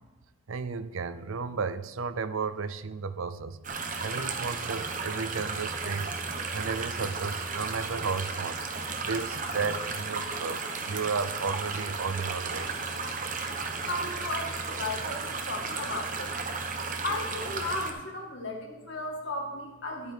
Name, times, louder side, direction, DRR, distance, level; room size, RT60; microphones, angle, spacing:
voice 1, 0.5-3.6 4.0-8.6 9.0-12.7, right 5 dB, 75° right, 12 dB, 0.6 m, -33 dB
sound 1, 3.6-17.9, right 4 dB, 40° right, 1.0 m, -34 dB
voice 2, 13.8-16.3 17.0-20.1, left 2 dB, 60° left, 0 dB, 2.1 m, -35 dB
11.0 x 8.4 x 4.6 m, 1.1 s
head